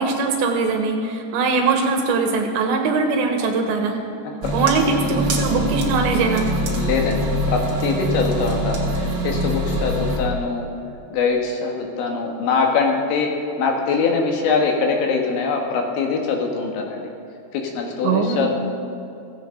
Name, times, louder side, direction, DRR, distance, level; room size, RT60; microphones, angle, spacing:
voice 1, 0.0-4.0 4.5-6.5 18.0-18.5, right 4 dB, 80° right, 3 dB, 3.6 m, -21 dB
sound 1, 4.4-10.2, right 1 dB, 55° right, 1.3 m, -24 dB
voice 2, 6.8-10.7 11.1-13.3 13.6-17.1 17.5-18.5, left 4 dB, 85° left, 1 dB, 3.9 m, -23 dB
16.5 x 15.5 x 3.9 m, 2.6 s
omnidirectional pair, 5.1 m